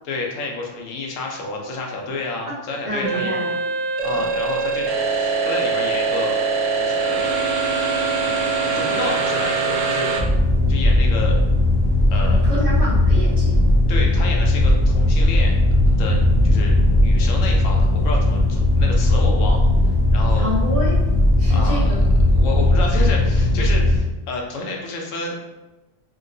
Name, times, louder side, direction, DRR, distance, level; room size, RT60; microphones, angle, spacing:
voice 1, 0.0-3.3 4.0-6.4 6.7-7.3 8.2-10.2 10.7-11.3 12.1-12.4 13.9-15.5 15.9-19.7 20.1-20.5 21.5-21.9 22.3-25.4, left 3 dB, 90° left, 0 dB, 1.0 m, -30 dB
voice 2, 2.8-3.6 4.1-4.2 12.3-13.6 20.3-21.0 21.4-22.1, left 1 dB, 30° right, -8 dB, 0.8 m, -28 dB
sound 1, 3.0-10.2, right 4 dB, 70° right, 0.8 m, -22 dB
sound 2, 10.2-24.0, left 1 dB, 40° left, 0.3 m, -17 dB
2.9 x 2.9 x 2.6 m, 1.1 s
omnidirectional pair, 1.3 m